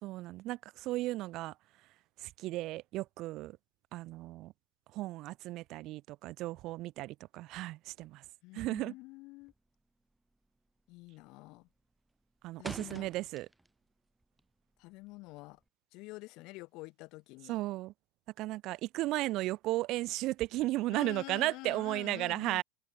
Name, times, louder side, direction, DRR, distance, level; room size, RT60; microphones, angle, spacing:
voice 1, 0.0-1.5 2.2-3.6 3.9-4.5 4.9-8.2 8.5-8.9 12.4-13.5 17.5-17.9 18.4-22.6, right 17 dB, 50° right, 0.6 m, -35 dB
voice 2, 8.4-9.5 10.9-11.7 12.6-13.1 14.8-15.6 15.9-17.6 20.9-22.6, left 23 dB, 60° left, 1.1 m, -47 dB
sound 1, 9.4-9.8 10.1-10.5 10.8-11.2 11.6-13.9 14.2-15.7, right 1 dB, 5° right, 0.6 m, -48 dB
supercardioid pair, 135°, 0 cm